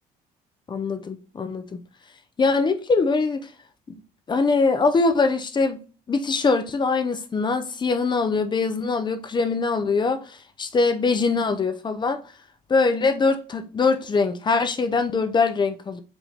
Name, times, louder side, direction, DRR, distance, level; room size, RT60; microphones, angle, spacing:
voice 1, 0.7-1.8 2.4-3.5 4.3-12.2 12.7-16.0, left 4 dB, 25° left, 0.6 m, -23 dB
5.0 x 2.6 x 3.5 m
cardioid pair, 110°, 17 cm